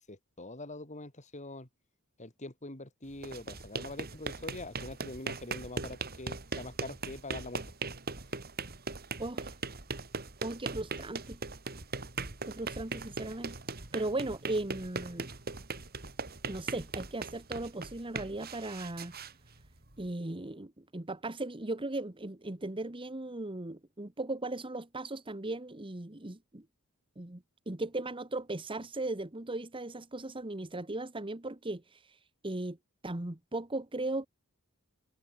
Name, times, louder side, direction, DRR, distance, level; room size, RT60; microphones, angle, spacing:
voice 1, 0.0-1.7 2.2-7.6, left 2 dB, 35° left, 3.9 m, -44 dB
sound 1, 3.1-20.1, right 4 dB, 45° right, 3.2 m, -40 dB
voice 2, 9.2-9.5 10.4-11.4 12.4-13.5 13.9-15.3 16.5-19.1 20.0-26.6 27.2-32.0 32.4-32.8 33.0-34.3, right 2 dB, 25° right, 1.4 m, -37 dB
head